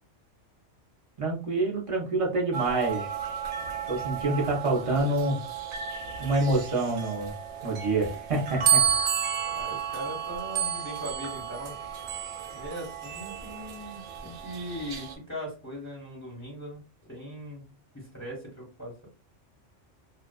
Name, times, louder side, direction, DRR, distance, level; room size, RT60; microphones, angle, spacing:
voice 1, 1.2-3.1 3.9-5.4 6.2-7.3 7.6-8.8, right 2 dB, 40° right, -1 dB, 0.6 m, -27 dB
sound 1, 2.5-15.2, right 8 dB, 70° right, 0.8 m, -32 dB
voice 2, 4.7-5.1 9.5-11.8 12.5-17.7 17.9-19.1, equal, 15° left, -4 dB, 0.7 m, -40 dB
2.4 x 2.3 x 2.3 m, 0.35 s
omnidirectional pair, 1.2 m